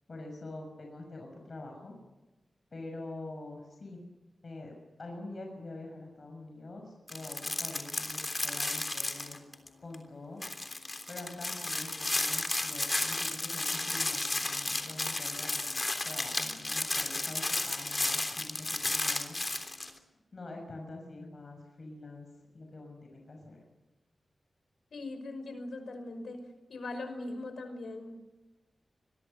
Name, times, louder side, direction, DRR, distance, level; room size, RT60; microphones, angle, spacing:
voice 1, 0.1-1.9 2.7-4.0 4.4-9.4 9.8-10.4 11.1-19.4 20.3-22.3 22.5-23.6, left 2 dB, 45° left, 2 dB, 6.4 m, -45 dB
sound 1, 7.1-9.7 9.9-10.0 10.4-19.9, left 2 dB, 25° left, 3.3 m, -33 dB
voice 2, 24.9-26.4 26.7-28.2, left 2 dB, 85° left, 8 dB, 5.5 m, -40 dB
27.0 x 22.5 x 6.8 m, 1.1 s
wide cardioid pair, 105°, 0 cm